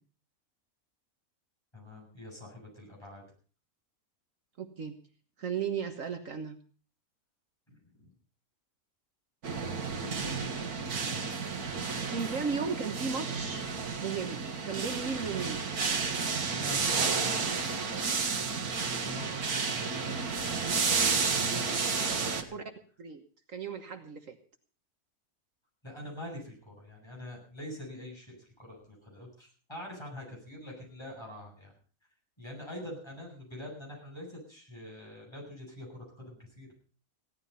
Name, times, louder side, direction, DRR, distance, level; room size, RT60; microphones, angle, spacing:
voice 1, 1.7-3.2 7.7-8.1 10.9-11.6 16.5-22.5 25.8-31.7 32.4-36.7, left 1 dB, 15° left, -2 dB, 8.0 m, -45 dB
voice 2, 4.6-5.0 5.4-6.6 12.1-13.7 14.0-15.7 22.5-22.6 23.0-23.2 23.5-24.4, right 5 dB, 60° right, 6 dB, 1.6 m, -35 dB
sound 1, 9.4-22.4, right 5 dB, 80° right, 2.1 m, -31 dB
16.5 x 12.5 x 5.6 m, 0.40 s
omnidirectional pair, 1.6 m